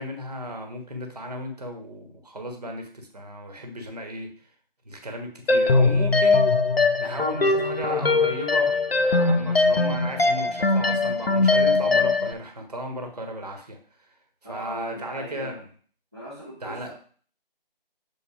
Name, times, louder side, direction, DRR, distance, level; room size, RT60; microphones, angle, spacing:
voice 1, 0.0-4.3 4.8-6.5 7.0-13.8 14.4-15.6 16.6-16.9, equal, 40° right, 4 dB, 1.4 m, -35 dB
sound 1, 5.5-12.3, left 3 dB, 85° left, 1.0 m, -21 dB
voice 2, 14.4-15.6 16.1-16.9, equal, 5° right, -18 dB, 1.0 m, -38 dB
7.3 x 4.0 x 4.9 m, 0.43 s
figure-of-eight pair, 170°, 29 cm